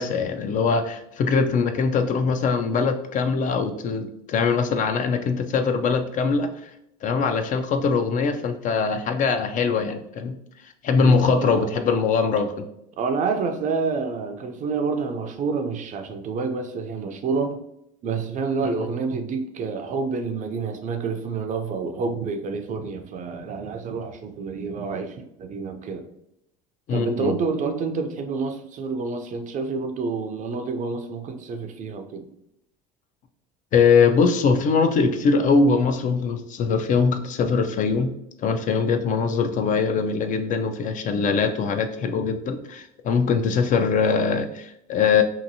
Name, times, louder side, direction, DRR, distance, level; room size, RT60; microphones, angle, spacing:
voice 1, 0.0-6.7 7.0-10.3 10.8-12.5 18.6-18.9 26.9-27.3 33.7-38.1 38.4-45.2, left 5 dB, 40° left, 7 dB, 0.4 m, -22 dB
voice 2, 11.0-11.7 13.0-17.6 18.0-26.1 26.9-32.3, right 4 dB, 40° right, 7 dB, 0.5 m, -28 dB
2.8 x 2.5 x 2.6 m, 0.80 s
supercardioid pair, 85°, 20 cm